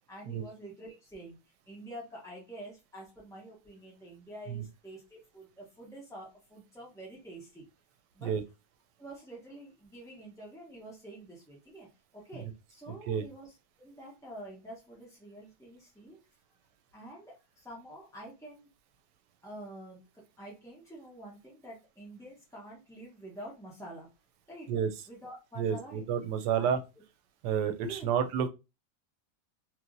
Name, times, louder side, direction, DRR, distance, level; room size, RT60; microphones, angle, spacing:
voice 1, 0.1-7.7 8.1-8.3 9.0-11.9 12.1-13.5 13.8-16.2 16.9-18.7 19.4-24.1 24.5-24.7 25.1-26.1 26.5-26.7 27.8-28.1, right 1 dB, 5° left, 0.4 m, -47 dB
voice 2, 25.6-26.8 27.4-28.5, right 8 dB, 90° right, 1.2 m, -30 dB
3.1 x 2.9 x 2.5 m
omnidirectional pair, 1.8 m